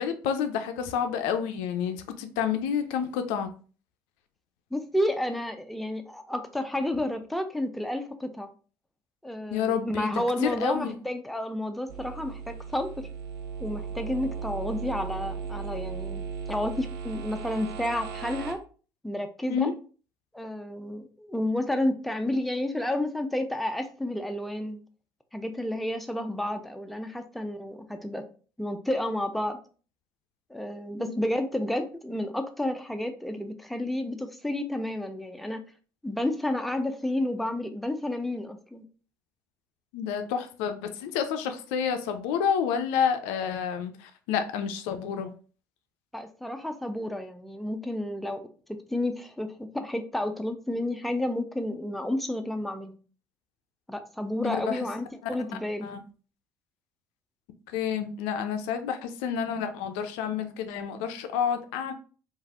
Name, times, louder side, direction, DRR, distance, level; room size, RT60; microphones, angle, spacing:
voice 1, 0.0-3.5 9.5-10.1 10.4-11.0 19.5-19.7 31.0-31.2 39.9-45.3 54.4-54.9 55.2-55.3 55.8-56.0 57.7-61.9, left 7 dB, 70° left, 0.4 m, -29 dB
voice 2, 4.7-8.5 9.2-13.1 13.6-18.6 19.0-19.7 20.3-24.8 25.3-28.2 28.6-29.6 30.5-35.6 36.0-38.8 46.1-48.4 48.9-53.0 53.9-55.9, left 1 dB, ahead, 0.4 m, -31 dB
sound 1, 11.9-18.5, right 5 dB, 75° right, 0.4 m, -36 dB
3.1 x 2.4 x 2.4 m
hypercardioid pair, 60°, 11 cm